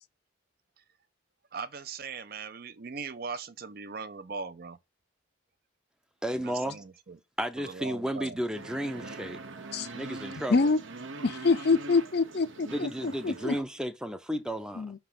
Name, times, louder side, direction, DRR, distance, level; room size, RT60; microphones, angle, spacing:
voice 1, 1.5-4.8 6.3-7.2 7.6-8.4, right 5 dB, 45° right, 0.6 m, -40 dB
voice 2, 6.2-6.8 7.4-9.4 9.9-10.7 12.7-14.9, equal, 5° right, 0.5 m, -33 dB
sound 1, 8.5-13.6, right 3 dB, 70° right, 0.9 m, -42 dB
voice 3, 11.2-13.6 14.8-15.0, left 4 dB, 50° left, 0.5 m, -26 dB
5.9 x 3.3 x 5.6 m
head